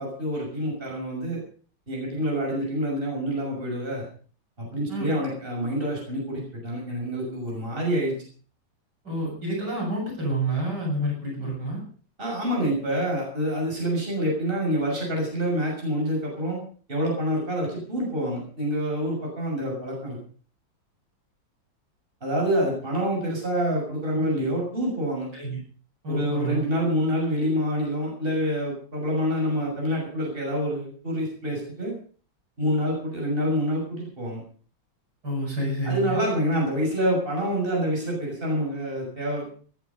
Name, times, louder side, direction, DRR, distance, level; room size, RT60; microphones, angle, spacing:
voice 1, 0.0-1.4 1.9-4.0 4.6-8.1 12.2-16.6 16.9-20.2 22.2-25.3 26.1-31.9 32.6-34.4 35.8-39.4, equal, 25° right, -2 dB, 6.6 m, -27 dB
voice 2, 9.0-11.8 24.1-24.5 25.3-25.6 26.0-26.6 35.2-36.2, right 1 dB, 60° right, -2 dB, 8.3 m, -29 dB
18.5 x 11.5 x 5.4 m, 0.44 s
omnidirectional pair, 2.1 m